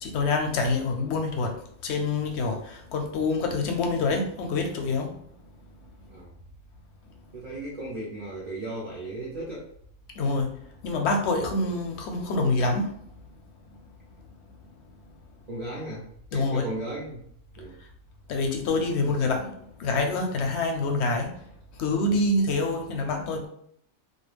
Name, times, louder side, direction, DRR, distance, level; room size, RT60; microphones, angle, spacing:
voice 1, 0.0-1.5 1.8-5.1 10.2-10.5 10.8-12.9 16.3-16.7 18.3-19.5 19.8-21.4 21.8-23.5, left 3 dB, 65° left, 3 dB, 0.7 m, -26 dB
voice 2, 6.1-6.4 7.3-9.7 15.5-16.0 16.3-17.2 17.6-17.8 22.1-22.2, right 2 dB, 50° right, -4 dB, 0.5 m, -36 dB
2.3 x 2.1 x 3.2 m, 0.67 s
omnidirectional pair, 1.4 m